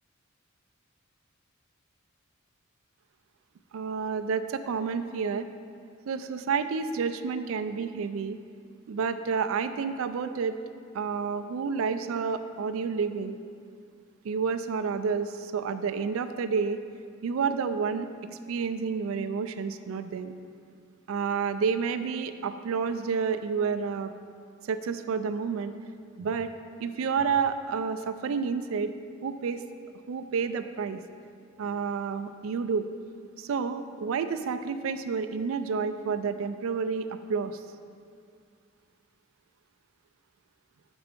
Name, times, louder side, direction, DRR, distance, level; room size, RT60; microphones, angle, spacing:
voice 1, 3.7-5.5 6.1-8.4 8.9-10.5 10.9-13.4 14.2-16.8 17.2-18.1 18.5-20.3 21.1-24.1 24.6-25.7 26.2-26.5 26.8-28.9 29.2-29.6 30.1-31.0 31.6-32.9 33.4-37.6, right 5 dB, 80° right, 10 dB, 0.3 m, -30 dB
6.0 x 4.5 x 5.1 m, 2.3 s
head